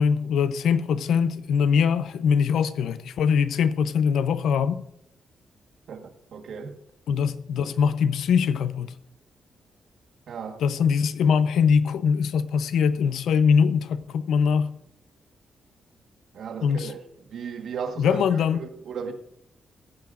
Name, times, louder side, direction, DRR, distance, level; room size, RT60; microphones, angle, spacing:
voice 1, 0.0-4.8 7.1-8.9 10.6-14.7 16.6-16.9 18.0-18.6, left 6 dB, 85° left, 0.7 m, -22 dB
voice 2, 5.9-6.8 10.3-10.6 16.3-19.1, right 6 dB, 70° right, 1.4 m, -36 dB
16.0 x 15.0 x 2.5 m
wide cardioid pair, 140°, 0 cm